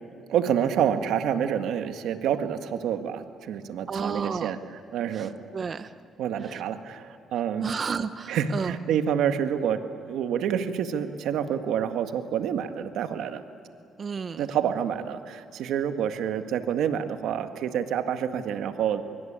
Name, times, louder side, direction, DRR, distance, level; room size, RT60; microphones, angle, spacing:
voice 1, 0.3-5.3 6.2-7.7 8.3-13.4 14.4-19.0, right 8 dB, 80° right, 7 dB, 1.7 m, -28 dB
voice 2, 3.9-4.5 5.1-5.3 5.5-5.9 6.5-6.6 7.6-8.7 14.0-14.4, right 5 dB, 45° right, 11 dB, 0.8 m, -31 dB
25.0 x 23.0 x 8.9 m, 2.6 s
cardioid pair, 90°, 0 cm